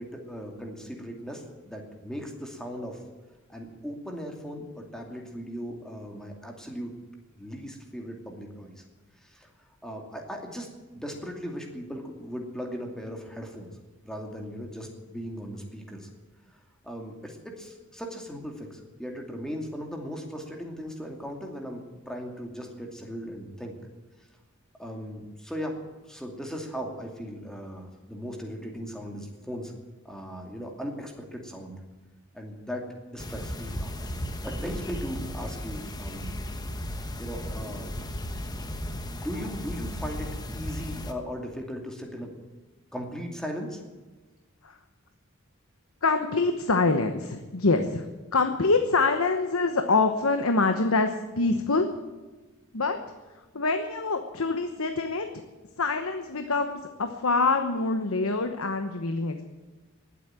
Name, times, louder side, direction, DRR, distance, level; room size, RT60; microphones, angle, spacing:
voice 1, 0.0-3.0 3.5-6.9 7.4-8.8 9.2-9.5 9.8-13.7 14.0-16.1 16.5-23.8 24.8-29.7 30.0-31.8 32.3-36.3 37.2-38.1 39.1-42.3 42.9-43.8, equal, 5° left, 1 dB, 2.5 m, -38 dB
sound 1, 33.2-41.1, left 1 dB, 20° left, 1.1 m, -35 dB
voice 2, 46.0-48.1 48.3-51.9 52.7-53.0 53.5-55.3 55.8-59.4, left 3 dB, 80° left, 6 dB, 1.1 m, -25 dB
19.5 x 8.3 x 8.9 m, 1.2 s
head